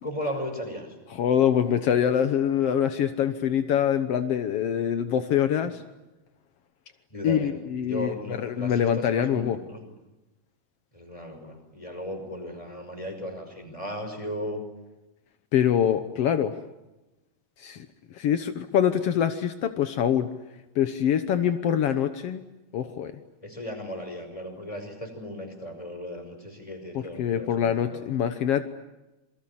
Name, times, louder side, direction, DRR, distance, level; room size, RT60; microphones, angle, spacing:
voice 1, 0.0-0.9 5.6-5.7 7.1-7.6 7.8-9.8 10.9-14.6 23.4-28.0, equal, 10° left, 6 dB, 5.5 m, -36 dB
voice 2, 1.1-5.8 7.2-9.6 15.5-16.6 17.6-17.9 18.1-20.3 20.7-22.5 22.7-23.1 26.9-28.6, left 9 dB, 75° left, 9 dB, 1.4 m, -24 dB
28.0 x 23.0 x 8.7 m, 1.0 s
omnidirectional pair, 4.3 m